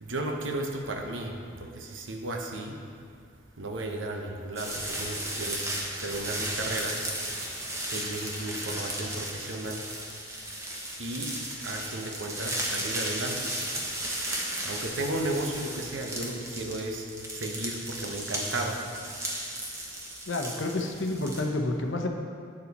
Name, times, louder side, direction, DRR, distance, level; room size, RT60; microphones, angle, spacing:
voice 1, 0.0-2.7 3.6-5.7 6.0-7.0 7.8-9.8 11.0-11.3 11.6-13.5 14.6-17.1 17.3-18.8, right 2 dB, 75° right, 2 dB, 1.0 m, -34 dB
sound 1, 4.6-21.4, right 1 dB, 15° right, 1.0 m, -35 dB
voice 2, 20.3-22.1, left 2 dB, 70° left, 3 dB, 0.8 m, -29 dB
8.7 x 7.0 x 4.1 m, 2.2 s
head